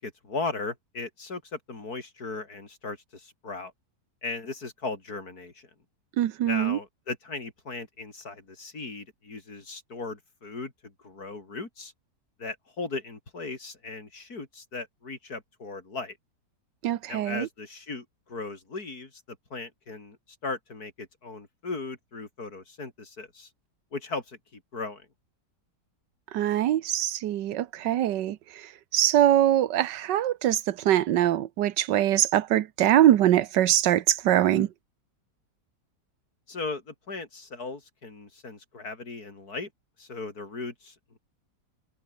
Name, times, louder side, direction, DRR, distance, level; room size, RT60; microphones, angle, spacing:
voice 1, 0.0-3.7 4.2-5.7 6.4-11.9 12.4-16.2 17.1-19.2 19.5-20.2 20.4-23.5 23.9-25.1 36.5-39.7 40.0-41.2, left 3 dB, 60° left, 4.5 m, -37 dB
voice 2, 6.2-6.8 16.8-17.5 26.3-28.4 28.9-34.7, right 12 dB, 85° right, 1.5 m, -23 dB
omnidirectional pair, 1.8 m